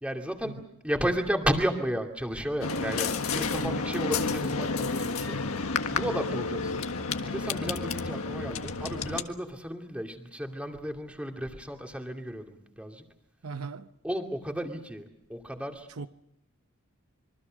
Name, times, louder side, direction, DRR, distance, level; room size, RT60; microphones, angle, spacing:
voice 1, 0.0-6.9 7.2-13.0 14.0-15.9, equal, 5° right, 2.5 m, -33 dB
sound 1, 2.6-9.2, left 4 dB, 75° left, 1.6 m, -30 dB
voice 2, 3.5-3.9 13.4-13.9 16.0-16.1, right 5 dB, 80° right, 0.8 m, -38 dB
26.0 x 23.5 x 6.4 m
head